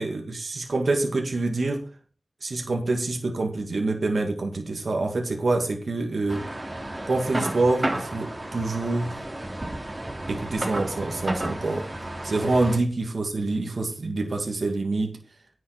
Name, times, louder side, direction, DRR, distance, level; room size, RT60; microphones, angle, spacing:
voice 1, 0.0-1.9 2.4-6.5 7.1-9.2 10.3-11.9 12.2-15.2, right 2 dB, 80° right, 2 dB, 2.1 m, -26 dB
sound 1, 6.3-12.8, right 1 dB, 35° right, 3.3 m, -32 dB
10.5 x 7.7 x 5.2 m, 0.37 s
wide cardioid pair, 45°, 0 cm